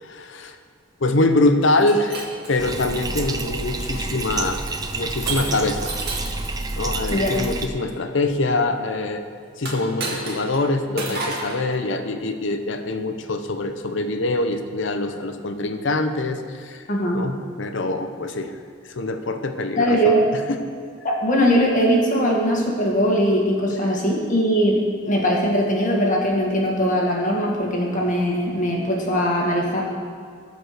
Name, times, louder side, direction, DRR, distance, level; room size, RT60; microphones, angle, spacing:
voice 1, 0.0-0.6 1.0-4.6 4.9-5.9 6.8-9.2 9.6-16.8 17.1-18.5 18.8-20.6 23.7-23.8, left 2 dB, 60° left, 8 dB, 0.7 m, -24 dB
Shatter, 1.7-3.1 3.7-4.1 5.3-6.4 9.6-10.6 11.0-11.6, right 3 dB, 50° right, 1.9 m, -31 dB
Bathtub (filling or washing), 2.6-7.7, right 2 dB, 20° right, 0.5 m, -29 dB
voice 2, 16.9-17.2 19.8-20.3 21.0-24.8 25.0-29.8, equal, 40° left, -1 dB, 1.8 m, -20 dB
14.0 x 5.1 x 6.6 m, 2.1 s
head